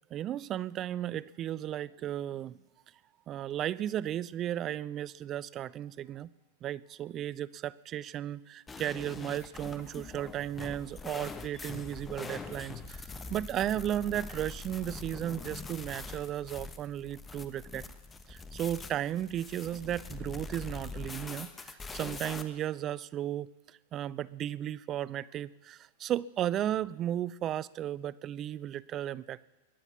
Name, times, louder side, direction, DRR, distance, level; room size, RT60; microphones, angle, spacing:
voice 1, 0.1-2.6 3.3-6.3 6.6-17.9 18.3-29.4, right 11 dB, 35° right, 19 dB, 0.4 m, -35 dB
sound 1, 8.7-22.4, left 4 dB, 15° left, 1.1 m, -43 dB
22.5 x 9.1 x 6.8 m, 1.2 s
figure-of-eight pair, 95°, 0 cm